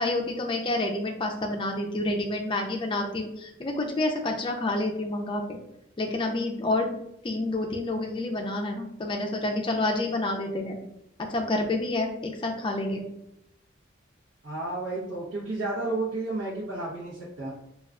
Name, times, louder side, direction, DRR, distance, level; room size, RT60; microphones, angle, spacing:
voice 1, 0.0-5.6 6.0-6.9 7.2-10.8 11.2-13.0, left 2 dB, 25° left, 2 dB, 0.4 m, -28 dB
voice 2, 14.4-17.5, right 2 dB, 85° right, -7 dB, 0.8 m, -32 dB
2.3 x 2.2 x 3.6 m, 0.81 s
head